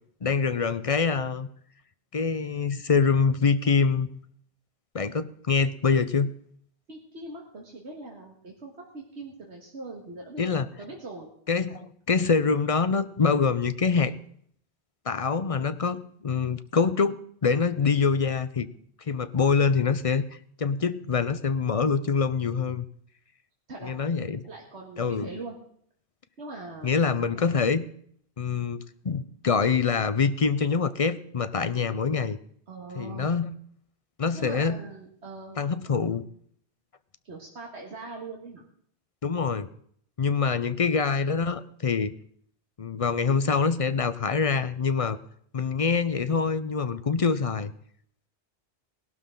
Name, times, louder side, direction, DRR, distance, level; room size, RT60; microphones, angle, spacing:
voice 1, 0.2-1.5 2.1-4.1 4.9-6.3 10.4-10.7 11.5-14.1 15.1-17.1 17.4-18.7 19.1-20.2 20.6-22.9 23.8-24.4 25.0-25.3 26.8-27.8 28.4-32.4 33.0-33.5 34.2-34.8 35.6-36.2 39.2-39.7 40.2-42.1 42.8-45.2 45.5-47.7, left 5 dB, 40° left, 13 dB, 0.6 m, -25 dB
voice 2, 6.9-10.4 10.8-11.3 23.7-23.9 24.5-25.6 26.4-27.0 32.7-33.4 34.3-35.6 37.2-38.6, right 3 dB, 85° right, -1 dB, 2.1 m, -41 dB
19.0 x 12.0 x 3.8 m, 0.63 s
omnidirectional pair, 1.1 m